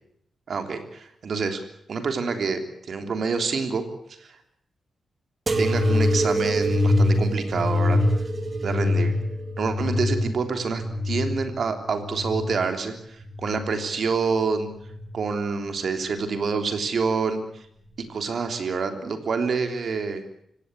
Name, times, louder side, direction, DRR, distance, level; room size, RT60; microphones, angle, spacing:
voice 1, 0.5-1.6 1.9-2.6 2.9-3.8 4.2-4.4 5.6-8.0 8.6-9.1 9.6-14.7 15.1-17.6 18.1-20.2, right 5 dB, 55° right, 7 dB, 3.3 m, -27 dB
sound 1, 5.5-12.7 13.2-14.0 14.7-15.3 16.2-16.3, left 1 dB, 35° right, 2.2 m, -24 dB
25.0 x 17.0 x 8.2 m, 0.69 s
wide cardioid pair, 140°, 0 cm